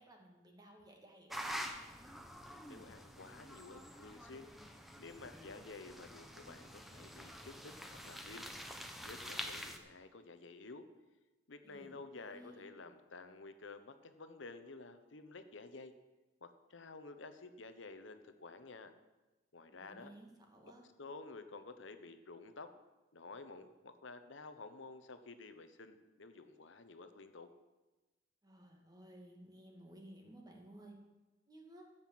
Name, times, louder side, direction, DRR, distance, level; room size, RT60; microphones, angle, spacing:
voice 1, 0.0-1.6 11.6-12.7 19.7-20.8 28.4-31.0 31.5-31.8, right 1 dB, 20° right, 1 dB, 2.2 m, -57 dB
sound 1, 1.3-9.8, equal, ahead, 1.0 m, -47 dB
voice 2, 2.7-8.8 9.0-10.9 11.5-15.9 16.4-18.9 19.5-20.1 20.6-20.7 21.0-22.7 23.1-27.5, left 3 dB, 70° left, 9 dB, 1.0 m, -52 dB
13.0 x 8.0 x 7.6 m, 1.1 s
head